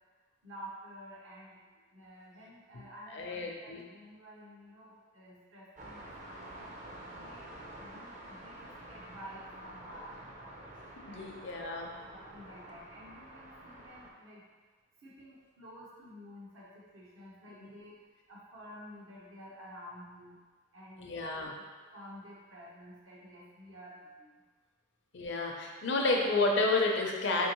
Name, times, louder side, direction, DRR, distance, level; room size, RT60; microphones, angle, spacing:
voice 1, 0.4-1.6 1.9-6.0 6.3-6.7 7.0-7.5 7.8-10.1 10.4-10.7 11.1-11.2 12.1-14.4 15.0-17.9 18.3-20.4 20.7-21.6 21.9-24.4, equal, 75° right, -6 dB, 0.9 m, -51 dB
voice 2, 3.1-3.8 11.1-11.9 17.6-17.7 21.0-21.5 25.1-27.5, left 2 dB, 60° left, 1 dB, 0.5 m, -30 dB
sound 1, 5.8-14.1, right 1 dB, 40° right, 0.5 m, -49 dB
4.4 x 2.9 x 3.0 m, 1.4 s
head